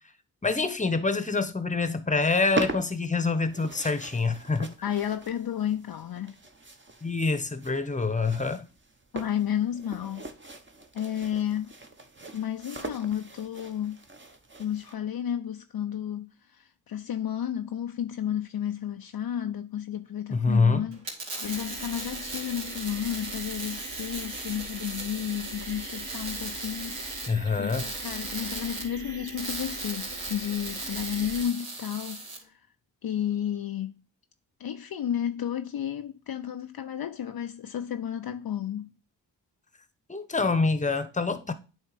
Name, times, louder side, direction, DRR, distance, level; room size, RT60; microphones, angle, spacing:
voice 1, 0.4-4.7 7.0-8.7 20.3-20.8 27.3-27.9 40.1-41.5, left 4 dB, 15° left, 1.0 m, -26 dB
sound 1, 2.2-14.9, right 2 dB, 25° right, 1.2 m, -40 dB
voice 2, 4.8-6.3 9.1-10.3 10.9-11.7 12.3-14.0 14.6-21.0 21.4-27.3 27.6-32.7 33.0-34.0 34.6-39.0, left 10 dB, 50° left, 0.6 m, -32 dB
sound 2, 20.9-32.4, right 2 dB, 80° right, 2.2 m, -37 dB
sound 3, 21.4-31.4, right 2 dB, 45° right, 1.6 m, -42 dB
8.8 x 3.2 x 5.0 m
supercardioid pair, 40°, 46 cm